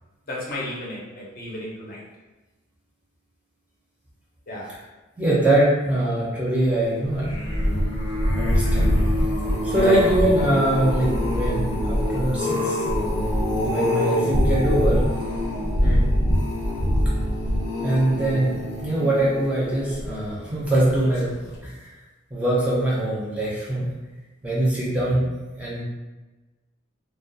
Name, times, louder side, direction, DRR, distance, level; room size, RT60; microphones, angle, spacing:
voice 1, 0.3-2.0 4.5-4.7 9.7-10.0 15.8-16.1, left 1 dB, 45° left, -5 dB, 0.6 m, -33 dB
voice 2, 5.2-7.4 8.4-9.0 9.6-12.8 13.7-15.0 17.8-21.4 21.6-21.9 22.3-23.9 24.4-25.8, right 1 dB, 5° right, -7 dB, 0.5 m, -23 dB
sound 1, 7.1-20.4 21.0-21.3 21.5-21.6, equal, 90° left, 0.7 m, -24 dB
2.2 x 2.1 x 2.6 m, 1.2 s
head